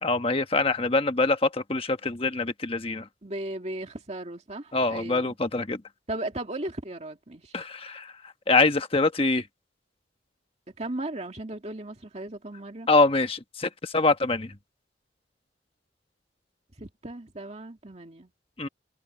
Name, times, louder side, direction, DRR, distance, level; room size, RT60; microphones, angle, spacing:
voice 1, 0.0-3.1 4.7-5.8 7.5-8.1 8.5-9.4 12.9-14.5 18.6-18.7, left 3 dB, 30° left, 1.3 m, -24 dB
voice 2, 3.2-5.4 6.1-7.5 10.8-12.9 16.8-18.3, right 1 dB, 35° right, 2.3 m, -36 dB
head